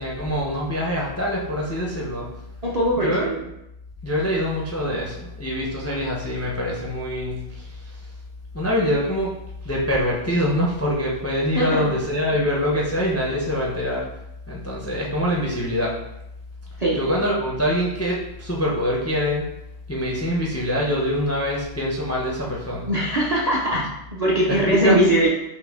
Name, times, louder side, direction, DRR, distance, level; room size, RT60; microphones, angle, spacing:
voice 1, 0.0-2.3 3.0-3.3 4.0-8.0 8.5-14.1 14.5-16.0 16.9-19.5 19.9-22.9 24.5-25.0, equal, 25° left, -3 dB, 0.3 m, -24 dB
voice 2, 2.6-3.4 11.6-11.9 16.8-17.0 22.9-25.3, right 1 dB, 45° right, -5 dB, 0.5 m, -21 dB
5.8 x 2.1 x 3.5 m, 0.84 s
omnidirectional pair, 1.3 m